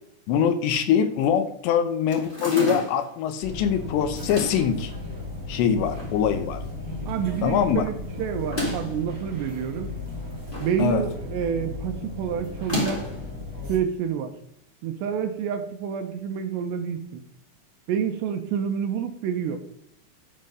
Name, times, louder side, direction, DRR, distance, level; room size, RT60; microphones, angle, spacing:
voice 1, 0.3-4.9 5.5-6.6 7.4-7.9 10.8-11.0, left 8 dB, 80° left, 9 dB, 2.9 m, -23 dB
sound 1, 2.1-3.1 4.2-4.7 5.5-6.2 6.5-6.6 6.8-6.9 8.4-9.0 10.0-10.8 11.1-11.4 12.6-13.2, left 1 dB, 15° left, 1.9 m, -31 dB
sound 2, 3.4-13.8, left 2 dB, 45° right, 1.4 m, -35 dB
voice 2, 7.1-9.9 10.6-13.1 13.7-14.3 14.8-17.2 17.9-19.6, right 8 dB, 80° right, 6 dB, 3.0 m, -28 dB
11.0 x 4.4 x 5.1 m, 0.71 s
omnidirectional pair, 5.2 m